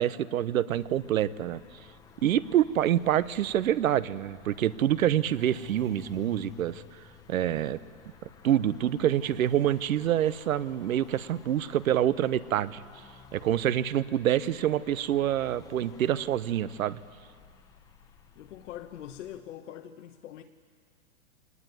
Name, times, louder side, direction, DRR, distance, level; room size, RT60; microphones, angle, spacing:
voice 1, 0.0-1.6 2.2-6.8 7.3-7.8 8.4-12.8 13.3-17.0, right 11 dB, 70° right, 16 dB, 1.0 m, -26 dB
sound 1, 0.7-19.4, left 7 dB, 10° left, 0.7 m, -53 dB
voice 2, 18.3-20.4, left 11 dB, 55° left, 4 dB, 1.1 m, -43 dB
23.5 x 19.5 x 9.5 m, 2.1 s
hypercardioid pair, 155°, 43 cm